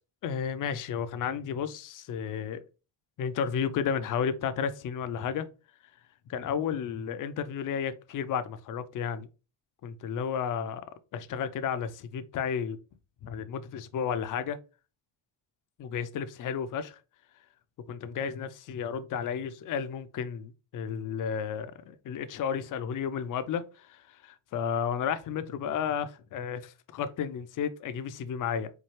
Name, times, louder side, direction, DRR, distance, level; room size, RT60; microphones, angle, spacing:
voice 1, 0.2-2.6 3.2-5.5 6.3-9.3 9.8-10.8 11.1-12.8 13.2-14.6 15.8-17.0 17.9-28.7, left 7 dB, 45° left, 0.5 m, -32 dB
4.5 x 2.3 x 3.1 m
supercardioid pair, 85°, 47 cm